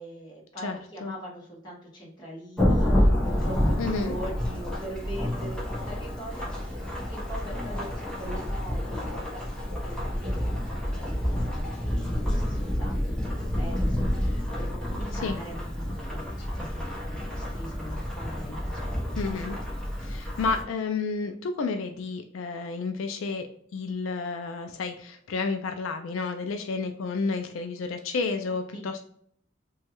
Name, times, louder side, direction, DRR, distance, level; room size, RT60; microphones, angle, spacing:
voice 1, 0.0-13.2 13.5-19.3 28.7-28.9, right 1 dB, 20° left, -4 dB, 1.1 m, -42 dB
voice 2, 0.6-1.1 3.8-4.2 15.2-15.3 19.2-19.6 20.0-29.0, left 4 dB, 80° left, 6 dB, 0.3 m, -31 dB
Thunderstorm / Rain, 2.6-20.6, equal, 5° left, 0.7 m, -29 dB
3.0 x 2.3 x 2.9 m, 0.64 s
head